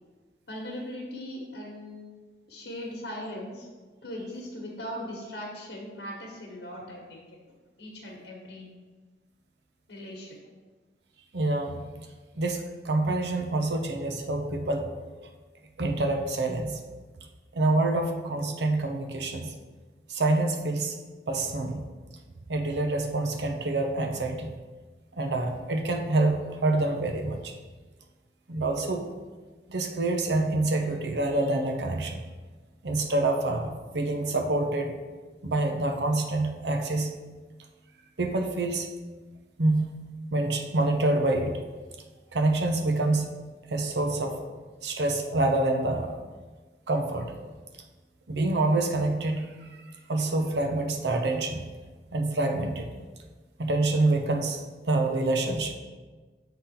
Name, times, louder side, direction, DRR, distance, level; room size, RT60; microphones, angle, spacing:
voice 1, 0.5-2.1 2.5-3.7 4.0-7.4 7.8-8.7 9.9-10.4, left 1 dB, 80° left, -3 dB, 1.3 m, -39 dB
voice 2, 11.3-11.8 12.4-14.9 15.8-16.8 17.5-19.5 20.1-21.0 21.3-21.8 22.5-24.5 25.2-27.5 28.5-29.0 29.7-32.2 32.8-34.9 35.4-37.1 38.2-38.9 39.6-39.9 40.3-41.6 42.3-43.3 43.7-44.4 44.8-46.2 46.9-47.3 48.3-49.7 50.1-51.6 52.1-52.9 53.6-55.7, right 2 dB, 75° right, 4 dB, 0.7 m, -26 dB
7.1 x 3.8 x 4.3 m, 1.3 s
head